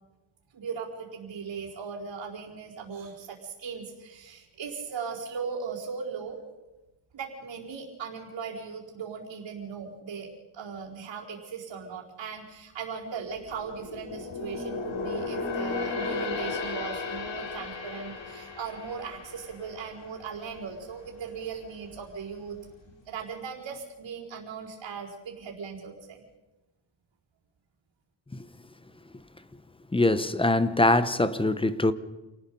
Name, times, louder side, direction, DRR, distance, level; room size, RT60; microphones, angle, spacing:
voice 1, 0.5-6.4 7.1-22.6 23.0-26.2, right 6 dB, 85° right, 4.4 m, -38 dB
sound 1, 13.2-20.7 21.1-21.3 21.8-22.6 22.9-23.0, left 4 dB, 85° left, 3.3 m, -35 dB
voice 2, 29.9-31.9, left 2 dB, 10° left, 0.8 m, -23 dB
28.0 x 19.5 x 5.4 m
wide cardioid pair, 170°, 43 cm